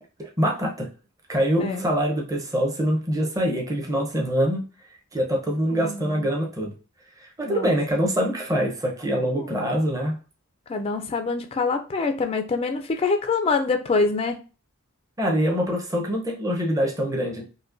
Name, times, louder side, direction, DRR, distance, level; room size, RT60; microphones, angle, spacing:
voice 1, 0.2-0.9 1.3-4.7 5.1-6.7 7.2-10.2 15.2-17.4, equal, 15° right, 0 dB, 0.7 m, -24 dB
voice 2, 5.7-6.3 7.5-7.7 9.4-9.6 10.7-14.4, left 4 dB, 25° left, 6 dB, 0.3 m, -25 dB
5.2 x 2.1 x 2.5 m, 0.34 s
head